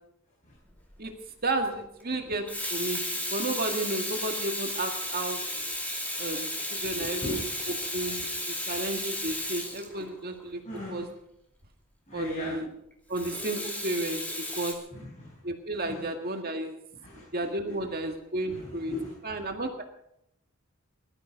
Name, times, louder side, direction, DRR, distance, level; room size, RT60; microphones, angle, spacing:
Water tap faucet / Sink (filling or washing), 0.7-0.9 2.3-10.5 13.1-14.7, left 1 dB, 5° left, 2.7 m, -34 dB
voice 1, 1.4-5.4 6.2-7.4 7.9-10.6 10.9-11.1 12.1-12.7 13.1-14.8 15.4-16.8 17.3-18.9 19.2-19.8, right 2 dB, 45° right, 4 dB, 1.9 m, -32 dB
voice 2, 7.0-7.9 10.6-11.0 12.1-12.5 14.9-15.3 15.8-16.1 17.0-17.3 17.7-17.8 18.4-19.1, left 1 dB, 35° left, -5 dB, 6.0 m, -38 dB
20.5 x 13.0 x 5.3 m, 0.78 s
head